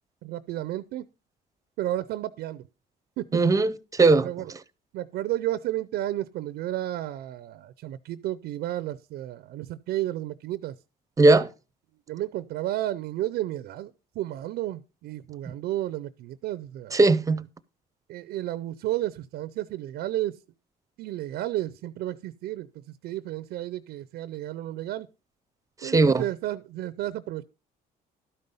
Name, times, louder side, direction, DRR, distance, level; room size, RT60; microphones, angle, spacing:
voice 1, 0.2-1.1 1.8-2.6 3.2-3.4 4.2-4.5 4.9-10.8 12.1-17.0 18.1-20.4 21.0-25.1 25.8-27.4, right 14 dB, 75° right, 0.5 m, -32 dB
voice 2, 3.3-4.3 11.2-11.5 16.9-17.4 25.8-26.2, right 3 dB, 20° right, 0.7 m, -19 dB
12.5 x 5.5 x 5.3 m
cardioid pair, 110°, 17 cm